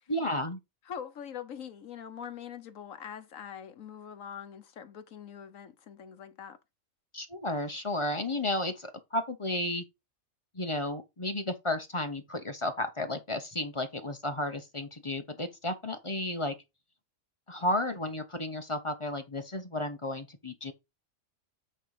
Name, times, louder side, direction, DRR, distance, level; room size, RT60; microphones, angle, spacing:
voice 1, 0.1-0.6 7.1-9.8 10.5-16.5 17.5-20.7, left 1 dB, 25° left, 0.9 m, -33 dB
voice 2, 0.9-6.6, left 8 dB, 70° left, 1.4 m, -43 dB
8.8 x 4.0 x 4.9 m
omnidirectional pair, 1.5 m